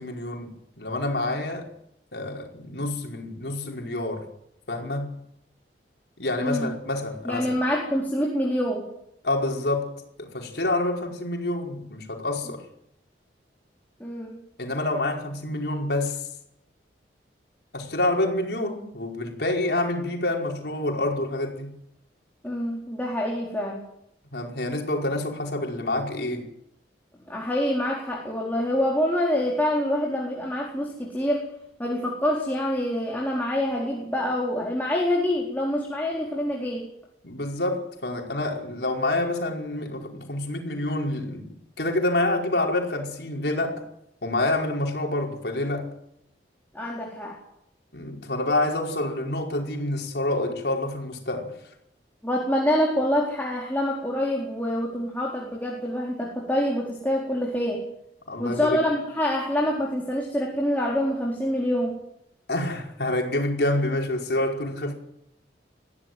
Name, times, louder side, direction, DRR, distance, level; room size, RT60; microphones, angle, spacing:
voice 1, 0.0-1.7 2.1-4.2 4.7-5.2 6.2-7.6 9.2-9.9 10.2-12.7 14.6-16.3 17.7-21.7 24.3-26.5 37.2-41.5 41.8-43.8 44.2-45.9 47.9-51.6 58.3-58.8 62.5-64.9, left 2 dB, 65° left, 5.0 m, -27 dB
voice 2, 6.4-6.7 7.2-8.9 14.0-14.4 22.4-23.8 27.3-31.5 31.8-36.8 46.7-47.4 52.2-57.9 58.4-62.0, left 1 dB, 10° left, 4.2 m, -26 dB
23.0 x 16.0 x 9.5 m
head